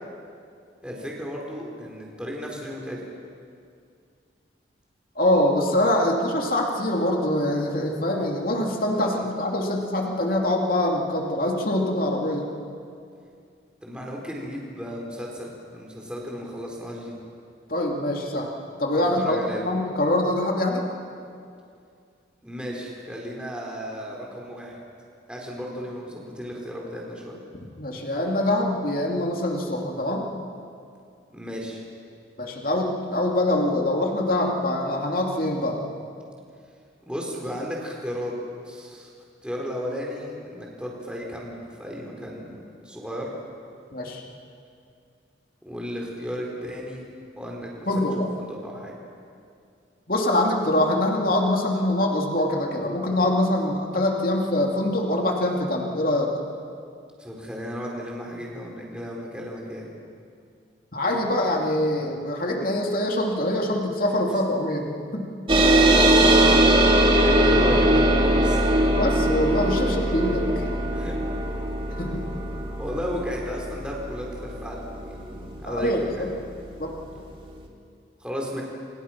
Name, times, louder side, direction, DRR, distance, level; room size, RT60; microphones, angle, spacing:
voice 1, 0.8-3.0 9.2-9.3 13.8-17.2 19.0-19.6 22.4-24.8 25.3-27.3 31.3-31.8 37.1-38.3 38.6-39.1 39.4-42.6 42.8-43.3 45.6-47.1 47.4-48.1 48.4-48.9 57.2-59.9 65.6-65.7 67.0-68.6 69.8-69.9 70.9-71.3 72.8-76.3 78.2-78.6, equal, 5° right, -2 dB, 4.3 m, -34 dB
voice 2, 5.2-12.5 17.7-18.5 18.8-19.4 19.6-20.8 27.8-30.2 32.4-35.8 43.9-44.2 47.9-48.3 50.1-56.3 60.9-65.3 66.2-66.4 68.9-70.7 72.0-72.3 75.7-76.3 76.8-76.9, left 1 dB, 50° left, 0 dB, 2.8 m, -24 dB
sound 1, 65.5-76.4, right 1 dB, 30° right, 2.3 m, -21 dB
28.0 x 28.0 x 6.0 m, 2.4 s
head